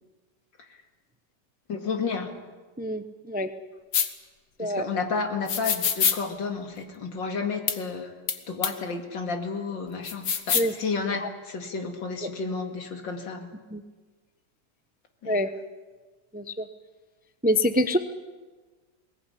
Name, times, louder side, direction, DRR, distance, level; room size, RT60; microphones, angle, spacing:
voice 1, 1.7-2.3 4.6-8.1 8.5-13.5 15.2-15.4, left 4 dB, 85° left, 5 dB, 2.9 m, -31 dB
voice 2, 2.8-3.5 4.6-4.9 10.5-10.7 13.7-13.8 15.3-15.5 16.3-16.6 17.4-18.0, left 1 dB, 10° right, 10 dB, 0.4 m, -25 dB
sound 1, 3.9-4.1 5.5-6.2 7.7-7.8 8.3-8.4 8.6-8.7 10.1-10.7, left 7 dB, 65° left, 1.9 m, -24 dB
21.5 x 18.5 x 10.0 m, 1.3 s
omnidirectional pair, 2.0 m